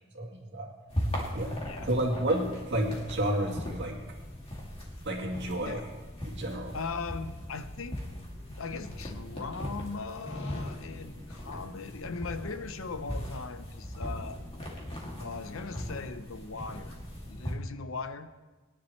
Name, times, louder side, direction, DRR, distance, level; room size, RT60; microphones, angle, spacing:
voice 1, 0.1-0.7 1.3-1.5 1.9-4.0 5.1-5.8 6.2-6.7, right 1 dB, 55° right, 0 dB, 2.2 m, -30 dB
sound 1, 0.9-17.5, equal, 30° left, 2.5 m, -39 dB
voice 2, 6.7-8.0 8.5-14.4 15.2-16.9 17.3-18.3, left 4 dB, 70° left, 10 dB, 0.8 m, -39 dB
22.5 x 10.5 x 3.2 m, 1.3 s
head